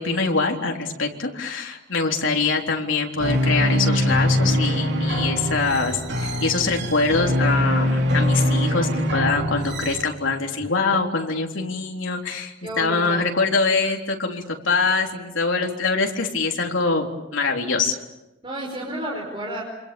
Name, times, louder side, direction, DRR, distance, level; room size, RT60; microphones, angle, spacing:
voice 1, 0.0-17.1 17.3-18.0, left 4 dB, 65° left, 1 dB, 3.6 m, -24 dB
sound 1, 3.2-10.0, equal, 55° right, 3.1 m, -22 dB
voice 2, 12.6-13.2 18.4-19.6, right 1 dB, 25° right, -1 dB, 5.2 m, -31 dB
27.5 x 26.5 x 7.1 m, 1.0 s
head